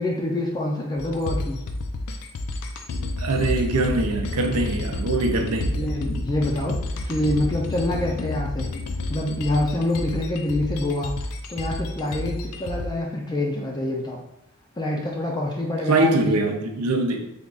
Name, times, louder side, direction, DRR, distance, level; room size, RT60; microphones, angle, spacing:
voice 1, 0.0-1.6 5.8-6.8 7.1-8.7 9.1-11.1 11.5-14.2 14.8-16.4, left 1 dB, 20° left, 0.4 m, -26 dB
sound 1, 1.0-12.9, left 2 dB, 90° left, 0.4 m, -30 dB
voice 2, 3.2-5.8 15.9-17.3, right 2 dB, 80° right, 0.5 m, -23 dB
3.5 x 2.3 x 3.8 m
head